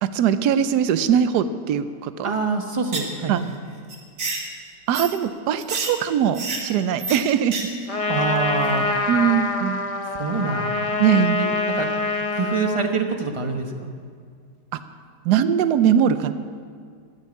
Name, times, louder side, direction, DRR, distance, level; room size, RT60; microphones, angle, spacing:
voice 1, 0.0-2.3 3.3-3.5 4.9-7.7 9.1-9.8 11.0-11.4 14.7-14.8 15.2-16.3, right 8 dB, 75° right, 12 dB, 1.2 m, -21 dB
voice 2, 2.2-3.4 8.1-8.9 10.2-10.8 11.4-11.9 12.3-13.9, right 4 dB, 25° right, 5 dB, 0.9 m, -25 dB
sound 1, 2.9-3.2 3.4-3.5 3.9-4.4 4.9-5.1 5.6-5.9 6.3-6.6 7.0-7.2 7.5-7.6 7.9-8.0, right 3 dB, 55° right, 2.2 m, -28 dB
Trumpet, 7.9-12.9, left 3 dB, 40° left, 0.5 m, -25 dB
14.5 x 8.2 x 9.7 m, 2.1 s
omnidirectional pair, 1.9 m